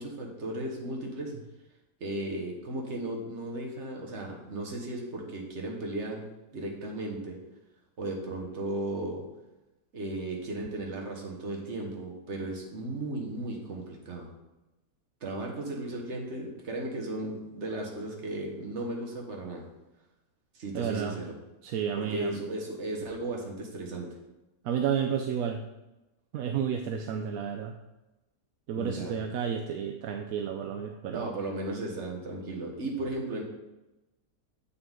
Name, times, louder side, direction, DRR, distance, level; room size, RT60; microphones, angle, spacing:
voice 1, 0.0-1.3 2.0-6.2 6.5-7.4 8.0-9.2 9.9-14.3 15.2-19.6 20.5-21.2 22.0-24.1 28.7-29.2 31.1-33.4, right 2 dB, 45° right, 0 dB, 1.6 m, -35 dB
voice 2, 20.7-21.2 21.6-22.4 24.6-25.7 26.3-27.8 28.7-31.3, right 8 dB, 70° right, 4 dB, 0.9 m, -31 dB
7.7 x 6.1 x 3.7 m, 1.0 s
omnidirectional pair, 1.7 m